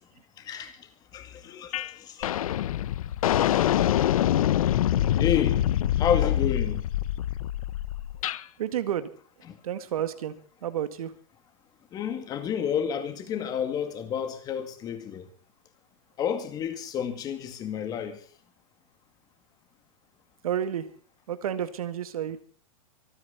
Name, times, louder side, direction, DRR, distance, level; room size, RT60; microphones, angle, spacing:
voice 1, 0.4-2.3 5.2-5.6 5.9-6.8 11.9-15.3 16.2-18.2, left 8 dB, 20° left, 2.2 m, -30 dB
sound 1, 1.7-1.9 2.2-8.4, left 12 dB, 80° left, 0.9 m, -25 dB
voice 2, 8.6-9.1 9.4-10.4 10.6-11.1 20.4-20.9 21.3-22.4, right 10 dB, 90° right, 2.0 m, -31 dB
25.5 x 9.9 x 4.2 m
supercardioid pair, 165°, 18 cm